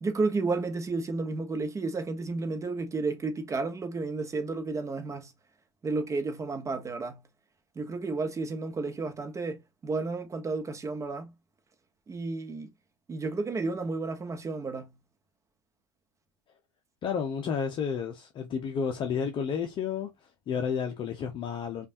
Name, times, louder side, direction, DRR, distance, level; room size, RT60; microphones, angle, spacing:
voice 1, 0.0-5.3 5.8-7.2 7.7-11.3 12.1-12.7 13.1-14.9, right 3 dB, 20° right, 1.2 m, -32 dB
voice 2, 17.0-20.1 20.5-21.9, left 6 dB, 35° left, 0.7 m, -31 dB
5.2 x 2.5 x 2.7 m
figure-of-eight pair, 85°, 15 cm